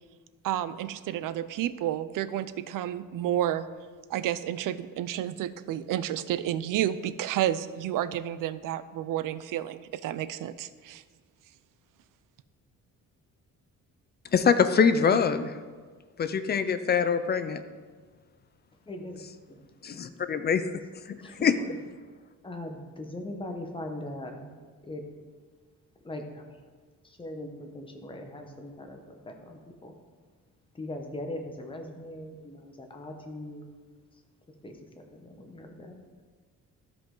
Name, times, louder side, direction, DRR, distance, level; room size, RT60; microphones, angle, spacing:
voice 1, 0.4-3.7 4.1-11.0, right 11 dB, 70° right, 14 dB, 0.5 m, -31 dB
voice 2, 14.3-15.5 16.2-17.6 19.8-20.6 21.1-21.6, left 6 dB, 30° left, 11 dB, 0.4 m, -24 dB
voice 3, 18.9-19.6 19.8-20.0 21.2-21.8 22.4-24.5 24.8-25.0 26.0-26.4 27.2-29.9 30.7-33.7 34.6-36.0, left 1 dB, 15° left, 3 dB, 0.9 m, -40 dB
13.0 x 5.2 x 3.8 m, 1.5 s
cardioid pair, 155°, 33 cm